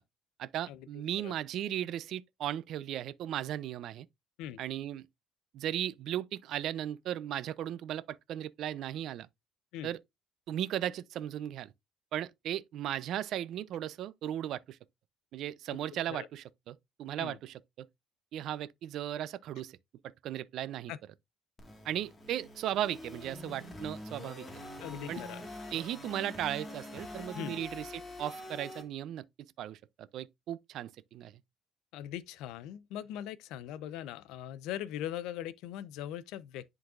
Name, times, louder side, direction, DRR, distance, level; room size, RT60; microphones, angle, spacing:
voice 1, 0.4-4.1 4.6-5.1 5.5-9.3 9.8-10.0 10.5-11.7 12.1-14.8 15.3-17.9 18.3-19.8 20.2-20.9 21.8-24.5 25.1-25.2 25.7-27.9 28.2-29.2 29.6-31.4, right 11 dB, 60° right, 0.4 m, -36 dB
sound 1, 21.6-28.8, left 1 dB, 20° left, 1.6 m, -45 dB
voice 2, 24.8-25.4 27.3-27.6 31.9-36.6, left 11 dB, 85° left, 0.5 m, -40 dB
10.5 x 3.9 x 2.4 m
cardioid pair, 155°, 0 cm